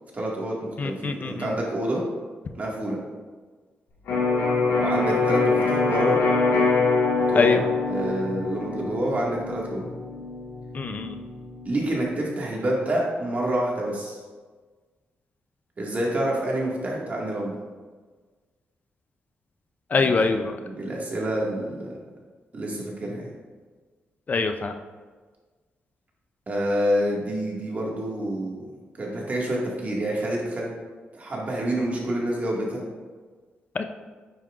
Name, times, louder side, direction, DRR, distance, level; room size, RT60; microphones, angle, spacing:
voice 1, 0.1-2.0 2.5-3.0 4.8-6.2 7.3-9.9 11.7-14.2 15.8-17.5 19.9-21.9 22.5-23.3 26.5-28.6 29.0-30.7 31.1-32.8, right 1 dB, 40° right, -3 dB, 1.9 m, -28 dB
voice 2, 0.8-1.5 7.3-7.6 10.7-11.2 19.9-20.5 24.3-24.7 33.7-33.8, left 4 dB, 40° left, 7 dB, 0.5 m, -23 dB
Electric guitar, 4.1-11.8, left 3 dB, 90° left, 2.0 m, -24 dB
9.1 x 5.6 x 2.5 m, 1.4 s
cardioid pair, 90°, 4 cm